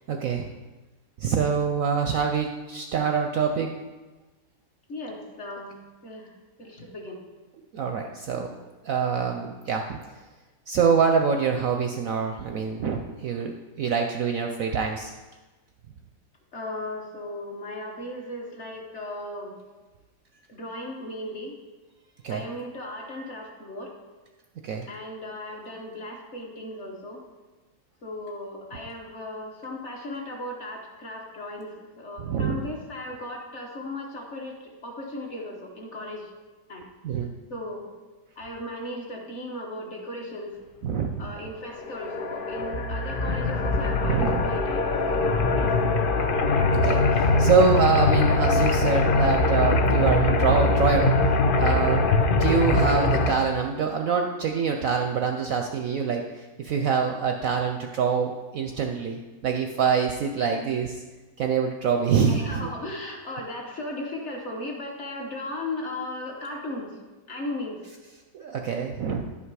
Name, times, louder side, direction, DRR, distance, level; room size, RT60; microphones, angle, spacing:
voice 1, 0.1-0.5 1.2-3.7 7.7-8.5 8.8-10.0 10.7-15.1 22.2-22.5 24.6-24.9 32.2-32.7 37.0-37.3 40.8-41.3 44.0-44.5 46.7-51.1 51.6-52.0 52.4-61.0 61.4-62.7 68.3-69.3, right 6 dB, 65° right, 4 dB, 0.9 m, -25 dB
voice 2, 4.9-5.8 6.0-6.3 6.6-7.2 16.5-19.5 20.5-21.5 22.3-23.9 24.9-27.2 28.0-36.3 36.7-36.9 37.5-38.0 38.4-40.5 41.2-45.7 62.3-67.0 67.3-67.8, left 1 dB, 45° left, 0 dB, 1.4 m, -36 dB
sound 1, 41.8-53.3, left 2 dB, 85° left, 0.4 m, -22 dB
11.0 x 5.7 x 4.8 m, 1.2 s
omnidirectional pair, 1.9 m